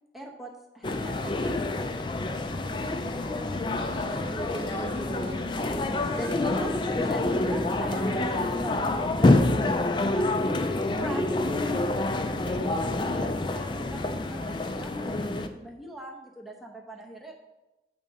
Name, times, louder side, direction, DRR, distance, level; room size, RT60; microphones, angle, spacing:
voice 1, 0.1-1.5 3.9-9.5 10.0-10.6 10.8-11.8 12.4-14.9 15.3-17.3, right 1 dB, ahead, -1 dB, 1.0 m, -40 dB
sound 1, 0.8-15.5, left 2 dB, 25° left, 0.4 m, -27 dB
voice 2, 2.5-5.4 6.2-6.9 12.6-12.8, right 2 dB, 70° right, 9 dB, 0.5 m, -46 dB
sound 2, 2.8-8.5, right 1 dB, 35° right, 0.8 m, -46 dB
9.8 x 3.7 x 5.2 m, 1.0 s
head